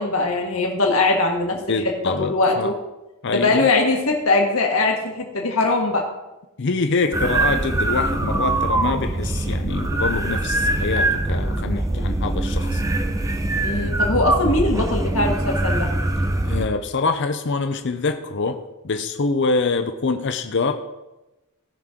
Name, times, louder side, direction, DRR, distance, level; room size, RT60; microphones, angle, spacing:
voice 1, 0.0-1.6 2.2-2.7 3.3-6.0 13.6-15.9, left 2 dB, 70° left, 0 dB, 1.6 m, -21 dB
voice 2, 1.7-2.7 3.2-3.7 6.6-12.8 16.4-18.6 18.8-20.7, left 4 dB, 55° left, 7 dB, 0.6 m, -25 dB
sound 1, 7.1-16.7, right 2 dB, 15° right, 0.6 m, -22 dB
17.0 x 6.1 x 3.7 m, 1.0 s
head